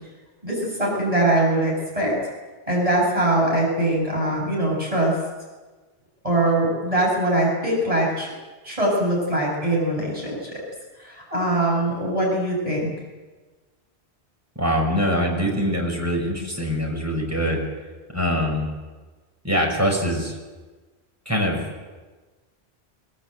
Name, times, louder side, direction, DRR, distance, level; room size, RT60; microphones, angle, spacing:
voice 1, 0.4-2.1 2.7-5.1 6.2-8.3 8.6-10.6 11.0-12.9, right 1 dB, 35° right, -3 dB, 7.3 m, -22 dB
voice 2, 14.6-17.6 18.1-18.7 19.4-20.4 21.3-21.6, equal, 15° right, 0 dB, 6.2 m, -23 dB
24.0 x 21.5 x 8.0 m, 1.3 s
omnidirectional pair, 1.1 m